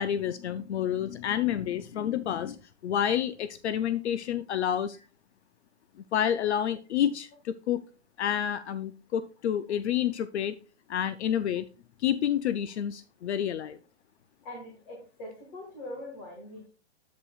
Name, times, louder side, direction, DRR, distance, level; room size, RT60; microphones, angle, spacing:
voice 1, 0.0-5.0 6.1-7.8 8.2-10.5 10.9-11.6 12.0-13.8, left 9 dB, 70° left, 14 dB, 0.5 m, -29 dB
voice 2, 14.4-16.7, left 1 dB, 30° left, -1 dB, 1.8 m, -42 dB
10.0 x 8.1 x 2.4 m, 0.35 s
hypercardioid pair, 175°, 35 cm